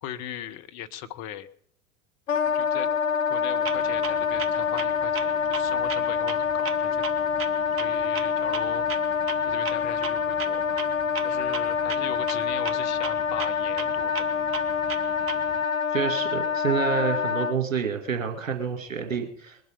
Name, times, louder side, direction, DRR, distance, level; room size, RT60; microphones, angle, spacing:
voice 1, 0.0-1.5 2.5-2.9 3.3-7.0 7.8-8.8 9.5-10.8 11.2-14.1, left 11 dB, 45° left, 9 dB, 1.1 m, -38 dB
Wind instrument woodwind instrument, 2.3-17.6, left 6 dB, 65° left, 0.8 m, -26 dB
Clock, 3.6-15.6, right 7 dB, 35° right, 1.1 m, -39 dB
voice 2, 15.9-19.6, right 6 dB, 75° right, 4 dB, 2.4 m, -28 dB
21.0 x 7.9 x 5.3 m, 0.65 s
figure-of-eight pair, 75°, 39 cm